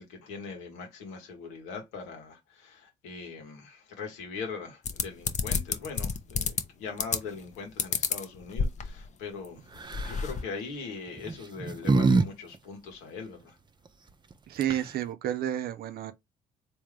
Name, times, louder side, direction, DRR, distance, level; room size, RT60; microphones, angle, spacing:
voice 1, 0.0-9.7 10.0-13.6, left 5 dB, 90° left, 1.3 m, -41 dB
sound 1, 4.8-6.6 7.0-7.4 7.8-9.1 9.4-9.5 9.7-10.4, left 5 dB, 45° left, 0.7 m, -29 dB
sound 2, 9.8-10.2 11.2-12.3 12.5-12.6 14.3-14.4 14.6-15.0, right 3 dB, 25° right, 0.6 m, -25 dB
voice 2, 14.5-16.1, right 11 dB, 65° right, 0.7 m, -31 dB
3.6 x 2.7 x 3.3 m
hypercardioid pair, 55°, 17 cm